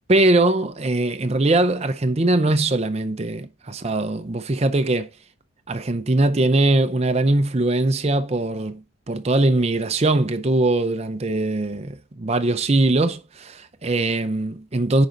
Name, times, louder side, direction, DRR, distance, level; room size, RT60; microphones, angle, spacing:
voice 1, 0.1-5.1 5.7-15.1, right 2 dB, 30° right, 0.6 m, -21 dB
9.6 x 5.1 x 3.8 m
head